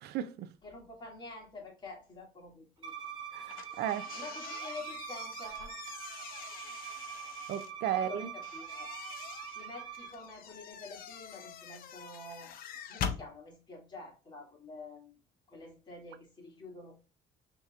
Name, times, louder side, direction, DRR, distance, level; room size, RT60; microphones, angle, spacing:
voice 1, 0.0-0.5 3.3-4.1 7.1-7.2 7.5-8.3, right 10 dB, 75° right, 0.4 m, -35 dB
voice 2, 0.6-2.9 3.5-3.8 4.1-5.8 7.9-8.9 9.5-12.6 12.9-15.2 15.5-16.9, left 3 dB, 25° left, 2.1 m, -48 dB
Bowed string instrument, 2.8-10.1, right 8 dB, 30° right, 1.2 m, -44 dB
sound 1, 3.5-7.7 8.4-13.2, left 7 dB, 60° left, 0.6 m, -44 dB
5.6 x 3.0 x 2.4 m
cardioid pair, 110°, 17 cm